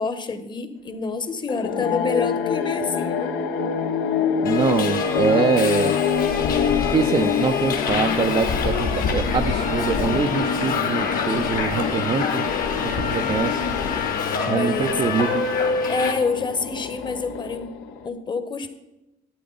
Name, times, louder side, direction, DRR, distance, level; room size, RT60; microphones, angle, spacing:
voice 1, 0.0-3.3 14.5-14.9 15.9-17.7 18.0-18.7, left 4 dB, 25° left, 10 dB, 1.0 m, -27 dB
sound 1, 1.5-18.1, left 7 dB, 85° left, 0.9 m, -26 dB
Subway metro underground, 4.4-16.1, left 5 dB, 60° left, 1.5 m, -27 dB
voice 2, 4.4-6.0 6.9-12.5 12.8-13.7 14.5-15.5, right 6 dB, 30° right, 7 dB, 0.4 m, -24 dB
12.0 x 8.5 x 3.9 m, 0.96 s
cardioid pair, 110°, 17 cm